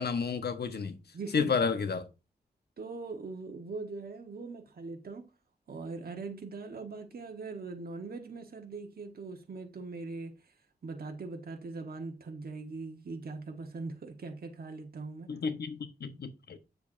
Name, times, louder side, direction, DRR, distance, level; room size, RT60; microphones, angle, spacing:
voice 1, 0.0-1.0 1.3-2.1 15.3-16.6, left 5 dB, 80° left, 1.2 m, -31 dB
voice 2, 1.1-1.5 2.8-5.3 5.7-10.5 10.8-15.3, right 3 dB, 65° right, 1.4 m, -41 dB
8.1 x 6.9 x 2.7 m
wide cardioid pair, 105°, 17 cm